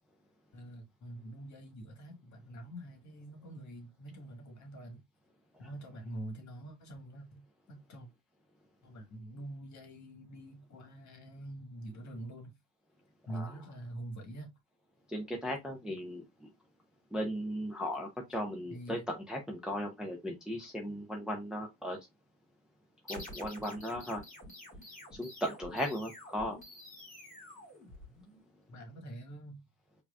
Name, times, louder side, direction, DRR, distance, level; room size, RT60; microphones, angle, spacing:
voice 1, 0.5-5.0 5.6-8.1 8.8-12.6 13.3-14.5 18.7-19.0 28.7-29.6, right 1 dB, 35° left, 1.5 m, -45 dB
voice 2, 15.1-16.5 17.1-22.0 23.1-24.2 25.2-26.6, equal, ahead, 0.7 m, -37 dB
sound 1, 23.1-28.5, left 1 dB, 15° left, 2.1 m, -49 dB
4.7 x 2.9 x 2.4 m
supercardioid pair, 100°, 50 cm